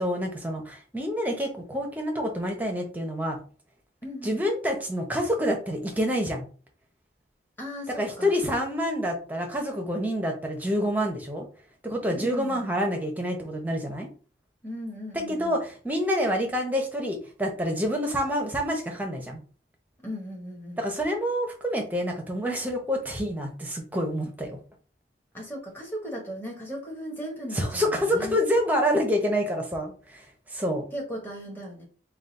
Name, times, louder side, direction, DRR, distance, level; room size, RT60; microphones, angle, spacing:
voice 1, 0.0-3.4 4.2-6.4 8.0-11.5 11.8-14.1 15.1-19.4 20.8-24.6 27.5-30.9, equal, 10° right, 2 dB, 0.8 m, -27 dB
voice 2, 4.0-4.4 7.6-8.3 12.1-12.6 14.6-15.6 20.0-20.8 25.3-28.4 30.9-31.8, equal, 10° left, -1 dB, 1.3 m, -37 dB
4.0 x 2.4 x 4.0 m, 0.39 s
head